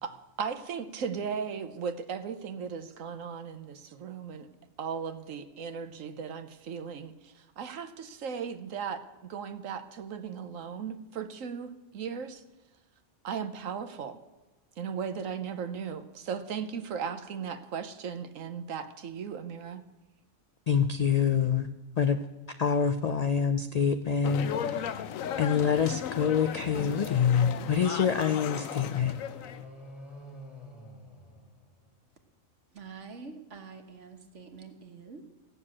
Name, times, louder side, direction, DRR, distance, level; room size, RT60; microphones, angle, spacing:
voice 1, 0.0-4.5 4.8-12.4 13.2-14.2 14.8-19.8, right 6 dB, 85° right, 1.3 m, -37 dB
voice 2, 20.7-21.7 22.0-22.2 22.5-24.9 25.4-29.1, left 7 dB, 65° left, 0.4 m, -26 dB
sound 1, 24.2-29.6, left 8 dB, 90° left, 1.1 m, -36 dB
sound 2, 28.8-32.1, left 1 dB, 25° left, 1.4 m, -48 dB
voice 3, 32.7-35.2, right 5 dB, 65° right, 1.7 m, -46 dB
15.0 x 6.9 x 8.6 m
omnidirectional pair, 1.3 m